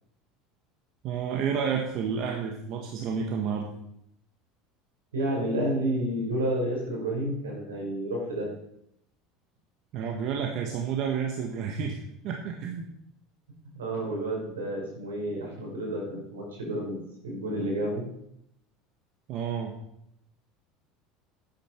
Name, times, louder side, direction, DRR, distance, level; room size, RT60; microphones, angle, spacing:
voice 1, 1.0-3.7 9.9-12.0 12.2-12.9 19.3-19.7, right 7 dB, 55° right, 1 dB, 1.6 m, -30 dB
voice 2, 5.1-8.6 13.7-18.1, right 1 dB, 85° right, -2 dB, 5.4 m, -30 dB
11.5 x 9.7 x 4.7 m, 0.77 s
hypercardioid pair, 80°, 0 cm